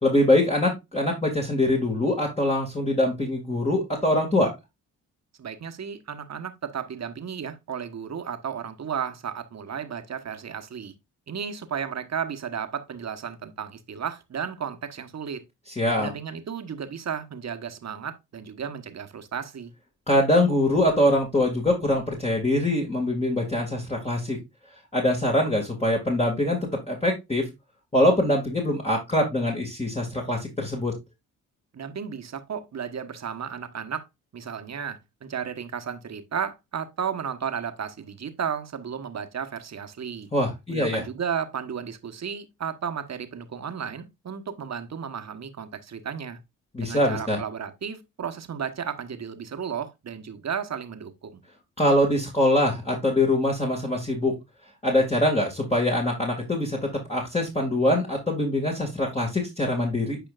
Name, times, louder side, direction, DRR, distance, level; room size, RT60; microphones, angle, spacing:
voice 1, 0.0-4.5 15.8-16.1 20.1-24.4 24.9-26.6 26.9-27.4 27.9-30.9 40.3-41.0 46.7-47.4 51.8-54.3 54.8-60.2, left 1 dB, 15° left, 2.3 m, -23 dB
voice 2, 5.4-10.9 11.3-15.4 16.0-19.7 31.7-34.0 34.3-40.3 40.7-46.4 46.8-51.4, right 7 dB, 45° right, 1.3 m, -33 dB
9.0 x 5.0 x 2.5 m
supercardioid pair, 55°, 36 cm